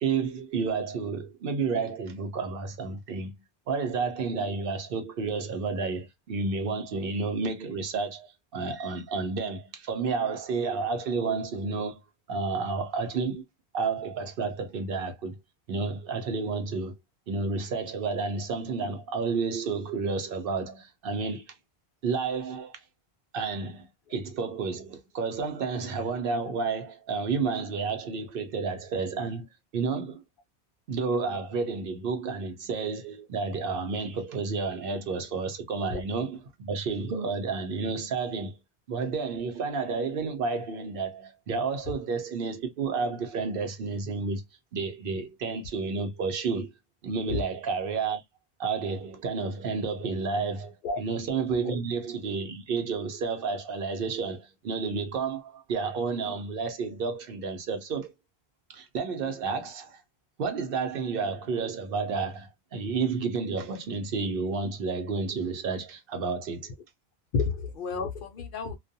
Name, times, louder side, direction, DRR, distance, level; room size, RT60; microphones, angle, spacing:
voice 1, 0.0-3.3 3.7-12.0 12.3-13.4 13.7-15.3 15.7-16.9 17.3-21.5 22.0-22.8 23.3-29.5 29.7-30.2 30.9-38.5 38.9-44.4 44.7-46.7 47.0-48.2 48.6-58.1 58.7-60.0 60.4-66.7, right 4 dB, 65° right, 0.7 m, -31 dB
voice 2, 67.3-68.7, left 4 dB, 60° left, 0.7 m, -30 dB
2.3 x 2.2 x 2.5 m
omnidirectional pair, 1.1 m